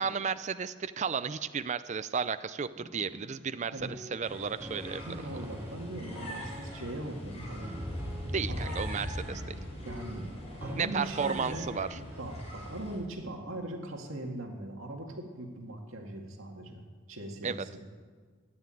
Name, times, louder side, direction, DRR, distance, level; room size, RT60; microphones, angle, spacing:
voice 1, 0.0-5.0 8.3-9.6 10.8-12.0 17.4-17.6, right 6 dB, 35° right, 12 dB, 0.4 m, -33 dB
sound 1, 2.8-12.4, right 1 dB, 10° right, 0.9 m, -49 dB
sound 2, 4.2-13.0, equal, 30° left, 5.2 m, -40 dB
voice 2, 5.0-7.8 8.5-8.7 9.9-10.3 10.6-16.8 17.1-17.8, right 1 dB, 75° right, 2 dB, 2.0 m, -40 dB
14.0 x 10.5 x 9.0 m, 1.5 s
head